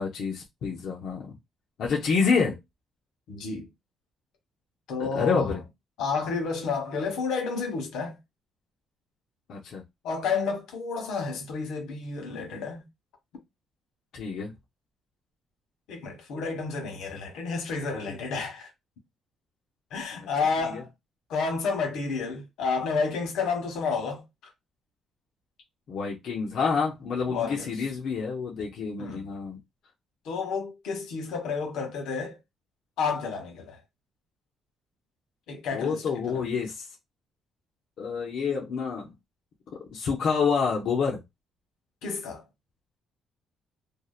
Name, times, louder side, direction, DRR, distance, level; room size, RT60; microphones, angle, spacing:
voice 1, 0.0-1.3 1.8-2.6 5.0-5.6 9.5-9.8 14.1-14.5 18.1-18.2 20.1-20.3 20.6-20.8 25.9-29.6 35.7-36.9 38.0-39.1 39.9-41.2, left 5 dB, 60° left, 0.6 m, -28 dB
voice 2, 3.3-3.7 4.9-5.6 6.0-8.2 10.0-12.9 15.9-18.7 19.9-20.9 21.3-24.2 27.3-27.7 29.0-29.2 30.2-32.4 33.0-33.8 35.5-36.4 42.0-42.4, left 5 dB, 80° left, 1.0 m, -30 dB
2.6 x 2.1 x 2.4 m
cardioid pair, 130°, 0 cm